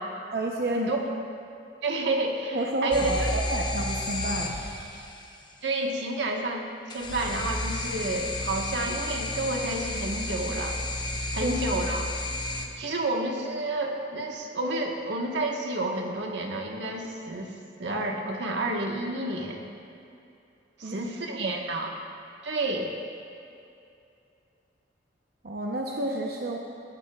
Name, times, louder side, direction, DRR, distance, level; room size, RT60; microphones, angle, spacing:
voice 1, 0.3-0.9 2.5-4.6 11.4-11.5 20.8-21.0 21.3-21.5 25.4-26.6, right 1 dB, 60° right, -1 dB, 0.8 m, -30 dB
voice 2, 1.8-3.3 5.6-10.9 11.3-12.1 12.8-17.5 17.8-19.7 20.8-21.9 22.4-22.9, right 2 dB, 85° right, 0 dB, 1.4 m, -30 dB
sound 1, 2.9-5.2 6.9-12.6, left 2 dB, 25° left, 0.8 m, -32 dB
18.5 x 12.5 x 2.4 m, 2.6 s
head